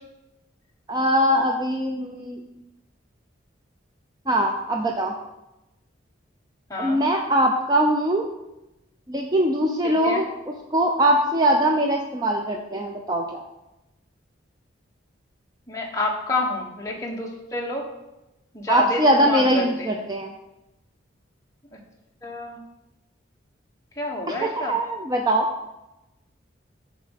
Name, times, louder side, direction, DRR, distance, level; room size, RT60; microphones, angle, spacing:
voice 1, 0.9-2.4 4.3-5.1 6.8-8.3 9.1-13.4 18.7-20.3 24.3-25.5, right 1 dB, 20° right, 2 dB, 0.5 m, -22 dB
voice 2, 6.7-7.0 9.8-10.2 15.7-17.8 18.5-19.7 22.2-22.6 24.0-24.7, left 2 dB, 15° left, -1 dB, 1.3 m, -28 dB
6.8 x 5.0 x 6.4 m, 0.95 s
head